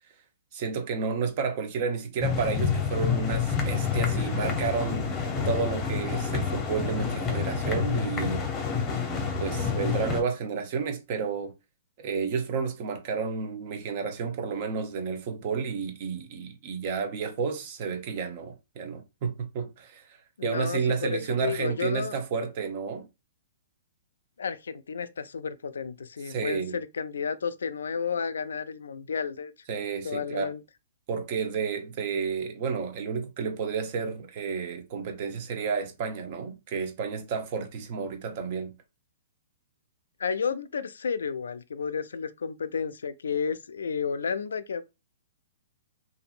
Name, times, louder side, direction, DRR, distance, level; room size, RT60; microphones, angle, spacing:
voice 1, 0.5-5.2 5.4-8.4 9.4-11.5 12.0-20.0 20.4-23.0 26.3-26.8 29.7-30.5 31.1-38.7, right 5 dB, 45° right, 0.8 m, -31 dB
sound 1, 2.2-10.2, left 6 dB, 20° left, 0.8 m, -28 dB
voice 2, 20.4-22.1 24.4-29.5 30.0-30.6 40.2-44.8, left 6 dB, 85° left, 0.3 m, -32 dB
2.7 x 2.5 x 2.4 m
hypercardioid pair, 135°, 0 cm